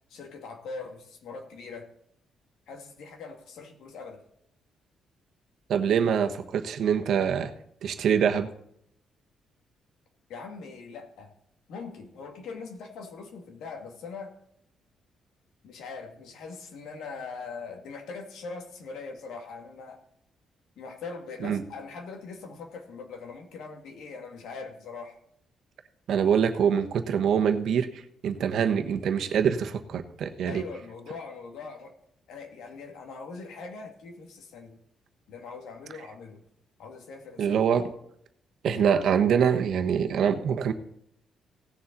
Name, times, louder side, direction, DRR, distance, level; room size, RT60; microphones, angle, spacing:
voice 1, 0.1-1.9 2.7-4.2 10.3-11.3 11.7-14.3 15.6-20.0 20.8-25.2 30.4-31.9 32.3-34.8 35.3-36.4 36.8-37.6, left 4 dB, 80° left, 3 dB, 2.4 m, -41 dB
voice 2, 5.7-7.5 7.8-8.5 21.4-21.6 26.1-30.6 37.4-37.9 38.6-40.7, right 7 dB, 60° right, 7 dB, 1.2 m, -24 dB
17.5 x 7.1 x 4.0 m, 0.73 s
cardioid pair, 155°, 0 cm